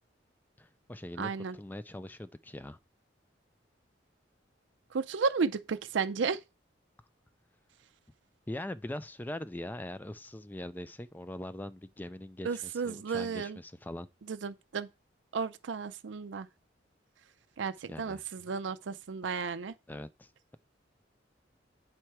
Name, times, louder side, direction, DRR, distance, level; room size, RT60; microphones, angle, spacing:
voice 1, 0.6-2.8 8.5-14.1 17.9-18.2 19.9-20.6, left 1 dB, 10° left, 0.4 m, -42 dB
voice 2, 1.2-1.6 4.9-6.4 12.4-13.6 14.3-14.9 15.3-16.5 17.6-19.7, right 5 dB, 70° right, 0.5 m, -33 dB
8.7 x 4.4 x 4.7 m
head